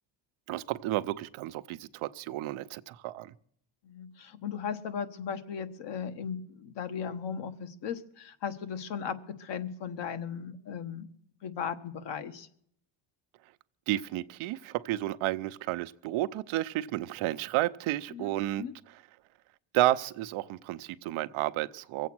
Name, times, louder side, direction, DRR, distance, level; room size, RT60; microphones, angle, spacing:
voice 1, 0.5-3.3 13.9-18.6 19.7-22.1, right 15 dB, 85° right, 0.8 m, -31 dB
voice 2, 3.8-11.1 11.4-12.5 18.1-18.3 18.6-18.7, left 7 dB, 60° left, 1.4 m, -37 dB
23.0 x 8.3 x 6.1 m
cardioid pair, 120°, 47 cm